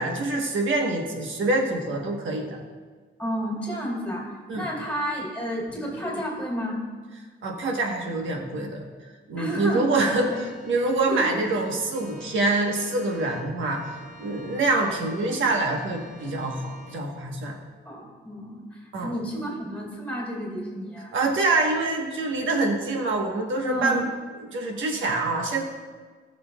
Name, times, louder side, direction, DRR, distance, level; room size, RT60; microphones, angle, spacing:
voice 1, 0.0-2.6 4.5-4.7 7.4-8.9 9.3-13.9 14.2-17.6 18.9-19.1 21.1-24.1 24.4-25.6, right 2 dB, 80° right, 1 dB, 1.3 m, -25 dB
voice 2, 3.2-6.8 9.3-10.4 11.1-11.3 17.8-21.1 23.6-24.0, equal, 5° left, -4 dB, 2.7 m, -31 dB
Organ, 10.2-17.0, equal, 45° right, 2.2 m, -47 dB
17.5 x 6.5 x 2.3 m, 1.4 s
wide cardioid pair, 145°, 20 cm